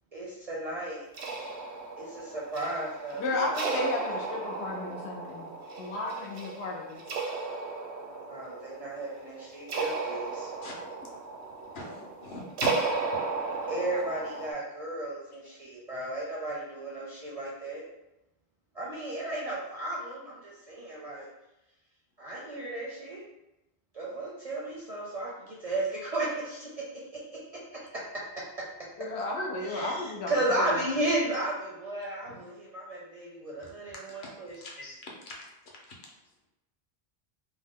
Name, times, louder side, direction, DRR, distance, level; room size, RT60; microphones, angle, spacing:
voice 1, 0.1-1.0 2.0-3.9 8.0-10.5 13.7-17.8 18.8-21.3 22.2-23.2 23.9-26.7 27.1-27.2 29.2-34.6, right 1 dB, 50° right, -4 dB, 0.4 m, -34 dB
sound 1, 1.1-14.5, right 4 dB, 85° right, 0.9 m, -35 dB
voice 2, 3.2-5.5 5.8-7.0 29.0-30.8, left 2 dB, 85° left, 0 dB, 0.9 m, -33 dB
voice 3, 11.7-13.2 32.3-32.4 33.9-35.0 35.2-35.5 35.9-36.0, left 2 dB, 55° left, -2 dB, 0.8 m, -41 dB
2.7 x 2.1 x 3.5 m, 0.94 s
omnidirectional pair, 1.1 m